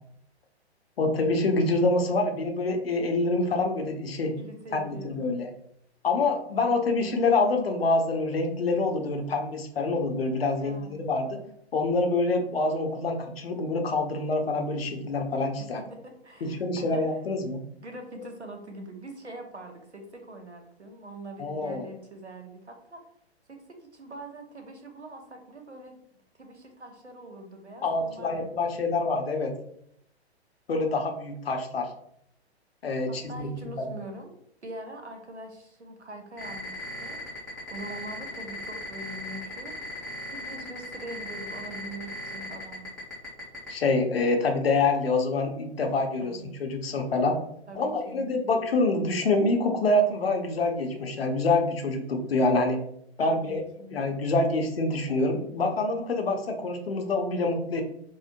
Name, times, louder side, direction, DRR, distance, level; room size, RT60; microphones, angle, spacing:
voice 1, 1.0-4.3 4.7-5.5 6.0-11.4 11.7-15.8 16.4-17.6 21.4-21.9 27.8-29.5 30.7-31.9 32.8-33.5 33.8-33.9 43.7-47.4 47.8-52.8 53.2-53.6 53.9-57.8, left 2 dB, 65° left, 3 dB, 0.7 m, -26 dB
voice 2, 4.4-5.5 10.5-11.1 15.9-17.0 17.8-23.0 23.5-25.9 26.4-28.9 33.1-34.3 34.6-40.0 40.3-42.9 46.2-46.5 47.7-48.2 53.2-54.0, right 1 dB, 90° right, 4 dB, 0.8 m, -43 dB
sound 1, 36.4-43.7, left 1 dB, ahead, 0.5 m, -38 dB
4.4 x 2.1 x 2.5 m, 0.71 s
figure-of-eight pair, 115°, 33 cm